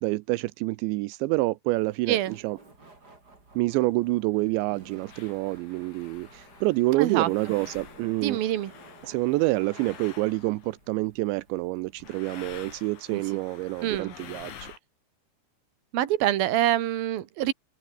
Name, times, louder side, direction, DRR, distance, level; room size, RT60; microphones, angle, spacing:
voice 1, 0.0-2.6 3.6-8.4 9.0-14.7, right 20 dB, 85° right, 3.0 m, -27 dB
Laughter, 1.7-12.2, right 3 dB, 20° right, 5.3 m, -54 dB
sound 1, 3.8-3.9 4.6-4.7 5.0-10.9 12.0-14.8, left 9 dB, 80° left, 5.6 m, -48 dB
voice 2, 7.0-7.3 8.2-8.7 13.1-13.2 13.8-14.1 15.9-17.5, right 13 dB, 60° right, 3.2 m, -25 dB
open air
omnidirectional pair, 5.2 m